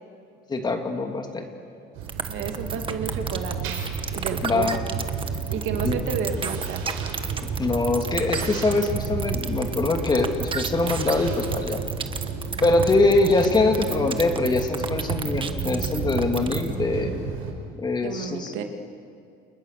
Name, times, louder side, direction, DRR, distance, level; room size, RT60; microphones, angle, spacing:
voice 1, 0.5-1.4 4.4-4.8 5.8-5.9 7.4-11.8 12.6-17.2 17.8-18.5, left 3 dB, 20° left, 4 dB, 2.6 m, -23 dB
sound 1, 1.9-17.5, right 5 dB, 85° right, 5.1 m, -31 dB
sound 2, 2.1-16.7, right 6 dB, 25° right, 1.3 m, -32 dB
voice 2, 2.3-3.7 4.1-4.7 5.5-6.8 18.0-18.6, right 6 dB, 65° right, 5 dB, 2.6 m, -31 dB
30.0 x 29.0 x 6.8 m, 2.4 s
cardioid pair, 160°, 21 cm